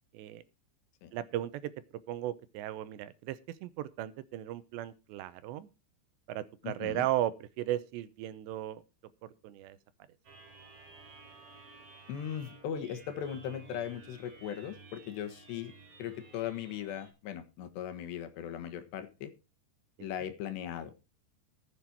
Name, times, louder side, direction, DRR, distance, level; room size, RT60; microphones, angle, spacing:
voice 1, 1.1-1.7 2.1-5.7 6.3-8.8 9.4-9.8 20.0-20.1, right 13 dB, 80° right, 15 dB, 2.9 m, -36 dB
voice 2, 6.6-7.1 12.1-15.7 16.0-19.3 20.0-20.9, left 9 dB, 70° left, 9 dB, 3.4 m, -38 dB
sound 1, 10.2-17.1, right 4 dB, 40° right, 4.9 m, -54 dB
14.5 x 8.7 x 4.5 m, 0.30 s
omnidirectional pair, 5.2 m